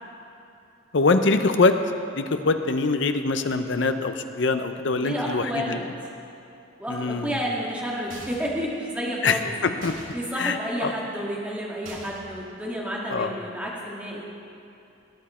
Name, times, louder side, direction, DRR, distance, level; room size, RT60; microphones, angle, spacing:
voice 1, 0.9-1.8 2.1-5.8 6.9-7.3 9.2-9.9 10.4-10.9 13.1-13.3, left 3 dB, 65° left, 8 dB, 0.7 m, -23 dB
voice 2, 5.0-5.9 6.8-9.5 10.1-14.3, equal, 5° right, -4 dB, 1.8 m, -30 dB
sound 1, 8.1-8.6 9.8-10.1 11.8-12.3, right 2 dB, 85° right, 2.3 m, -42 dB
19.5 x 8.7 x 4.3 m, 2.7 s
head